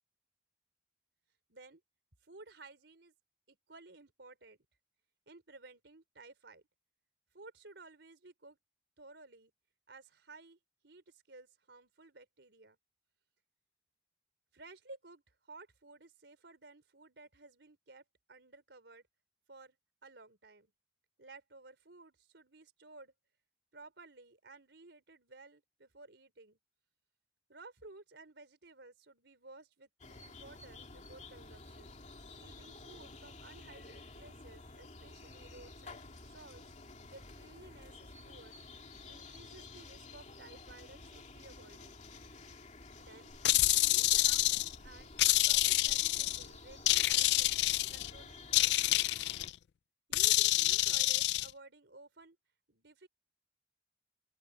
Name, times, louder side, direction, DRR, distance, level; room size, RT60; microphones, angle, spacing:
voice 1, 1.5-1.8 2.2-3.1 3.5-4.6 5.3-6.6 7.3-8.6 9.0-9.5 9.9-12.8 14.5-19.0 19.5-19.8 20.0-20.7 21.2-23.1 23.7-26.6 27.5-32.0 32.4-36.7 37.1-38.6 39.1-42.0 43.0-49.0 50.1-52.4 52.7-53.1, right 3 dB, 80° right, 4.0 m, -56 dB
sound 1, 30.0-49.5, left 3 dB, 40° left, 2.6 m, -51 dB
sound 2, 43.5-44.8 45.2-46.4 46.9-48.1 48.5-49.5 50.1-51.5, left 17 dB, 70° left, 0.3 m, -28 dB
open air
head